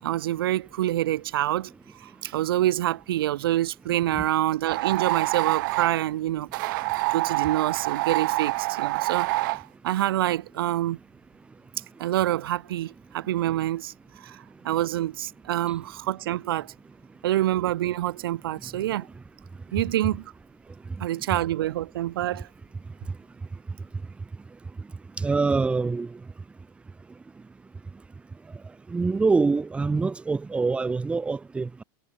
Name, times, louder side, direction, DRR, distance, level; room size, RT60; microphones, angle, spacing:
voice 1, 0.0-6.5 7.1-9.3 9.8-11.0 12.0-16.7 17.2-19.1 19.7-20.2 21.0-22.5, right 14 dB, 90° right, 6.9 m, -26 dB
sound 1, 4.6-6.0 6.5-9.6, right 21 dB, 60° right, 5.0 m, -27 dB
voice 2, 25.2-26.1 28.9-31.8, right 4 dB, 10° right, 2.7 m, -25 dB
supercardioid pair, 160°, 12 cm